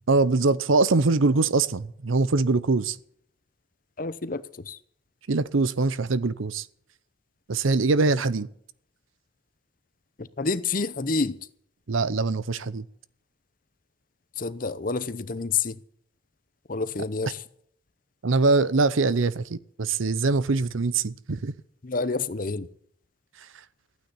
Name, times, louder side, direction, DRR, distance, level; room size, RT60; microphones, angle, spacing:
voice 1, 0.1-3.0 5.3-6.7 7.5-8.5 11.9-12.8 18.2-21.5, right 3 dB, 90° right, 0.7 m, -23 dB
voice 2, 4.0-4.8 10.2-11.4 14.4-15.8 16.7-17.4 21.8-22.7, left 4 dB, 45° left, 0.7 m, -28 dB
14.5 x 9.3 x 9.8 m
head